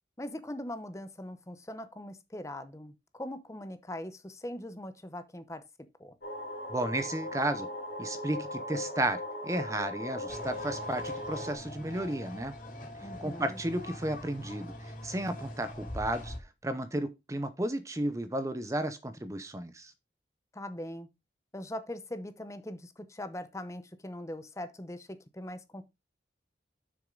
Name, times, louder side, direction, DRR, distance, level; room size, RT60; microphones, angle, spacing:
voice 1, 0.2-5.6 6.0-6.2 13.0-13.6 20.5-21.1 21.5-25.8, left 1 dB, 15° left, 0.7 m, -41 dB
sound 1, 6.2-11.5, left 1 dB, 70° left, 2.4 m, -38 dB
voice 2, 6.7-7.7 8.0-12.5 13.2-16.3 16.6-19.9, right 1 dB, 15° right, 0.6 m, -33 dB
sound 2, 10.3-16.4, left 1 dB, 45° left, 3.0 m, -43 dB
7.1 x 6.4 x 3.8 m
head